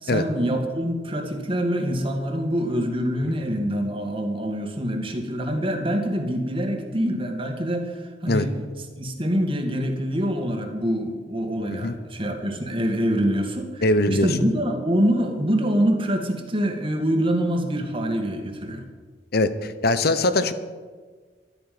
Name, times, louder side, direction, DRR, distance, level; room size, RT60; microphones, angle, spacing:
voice 1, 0.0-8.5 9.0-18.8, equal, 30° right, 3 dB, 2.1 m, -25 dB
voice 2, 13.8-14.3 19.3-20.5, left 2 dB, 60° left, 12 dB, 1.0 m, -21 dB
13.0 x 9.0 x 9.6 m, 1.5 s
head